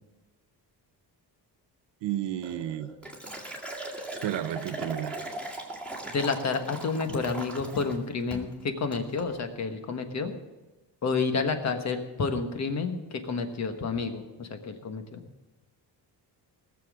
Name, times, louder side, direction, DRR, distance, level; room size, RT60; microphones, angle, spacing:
voice 1, 2.0-2.9 4.2-5.2, right 11 dB, 90° right, 11 dB, 0.9 m, -32 dB
Liquid, 2.4-8.0 8.3-8.6 8.9-9.3, right 2 dB, 5° left, 2.2 m, -39 dB
voice 2, 6.1-10.3 11.0-15.2, left 4 dB, 40° left, 6 dB, 1.4 m, -30 dB
18.5 x 7.3 x 6.2 m, 1.1 s
cardioid pair, 160°, 41 cm